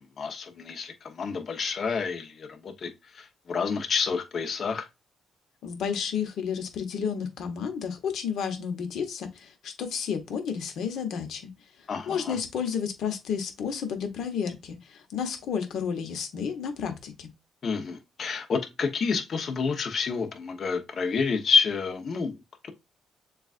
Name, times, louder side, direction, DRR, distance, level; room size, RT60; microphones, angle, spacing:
voice 1, 0.0-4.9 11.9-12.4 17.6-22.3 22.6-22.7, left 5 dB, 50° left, 1.0 m, -29 dB
voice 2, 5.6-11.5 12.1-17.3, left 7 dB, 75° left, 1.1 m, -31 dB
6.9 x 2.4 x 2.5 m
cardioid pair, 90°, 0 cm